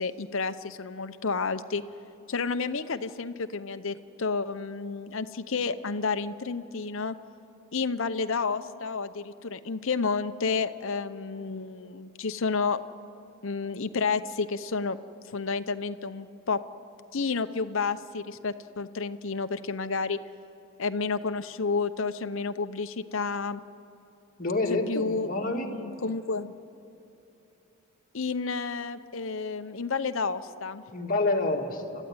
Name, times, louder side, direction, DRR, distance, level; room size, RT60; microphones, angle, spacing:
voice 1, 0.0-1.8 2.3-7.1 7.7-12.8 13.4-15.0 15.3-16.6 17.1-20.2 20.8-23.6 24.9-25.3 25.7-26.5 28.1-30.8, left 4 dB, 60° left, 10 dB, 0.8 m, -30 dB
voice 2, 24.4-25.7 30.9-32.1, left 2 dB, 40° left, 0 dB, 2.0 m, -28 dB
29.0 x 13.5 x 9.6 m, 2.9 s
head